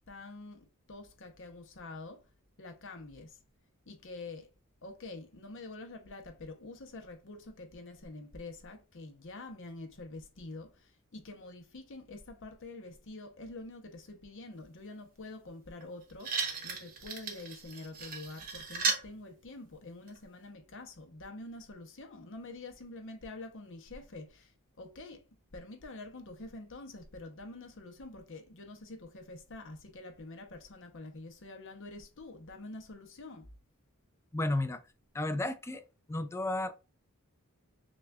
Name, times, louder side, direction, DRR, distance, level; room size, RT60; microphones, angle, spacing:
voice 1, 0.1-2.3 2.6-3.4 3.9-4.5 4.8-25.2 25.5-33.5, left 2 dB, 60° left, 0.8 m, -47 dB
sound 1, 15.8-15.9 16.2-19.1 20.1-20.2, right 4 dB, 40° right, 0.9 m, -35 dB
voice 2, 34.3-34.8 35.1-36.7, left 2 dB, 10° left, 0.4 m, -33 dB
6.0 x 2.4 x 2.3 m
head